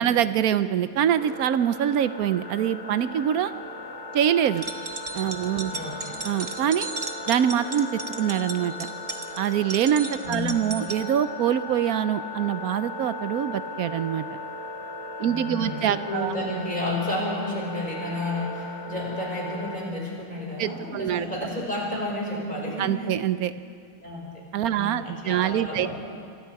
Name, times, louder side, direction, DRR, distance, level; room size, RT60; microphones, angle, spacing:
voice 1, 0.0-3.5 4.1-4.7 5.1-5.7 6.2-6.9 7.3-8.9 9.4-14.2 15.2-16.3 20.6-21.3 22.8-23.5 24.5-25.9, right 10 dB, 85° right, 13 dB, 1.2 m, -24 dB
sound 1, 1.1-19.8, left 2 dB, 15° right, 1.8 m, -37 dB
sound 2, 4.5-11.0, right 3 dB, 35° right, 1.3 m, -35 dB
voice 2, 10.2-10.7 15.3-23.1 24.0-24.4 24.7-25.9, left 1 dB, 30° left, -3 dB, 5.8 m, -31 dB
27.0 x 24.0 x 4.7 m, 2.3 s
omnidirectional pair, 1.5 m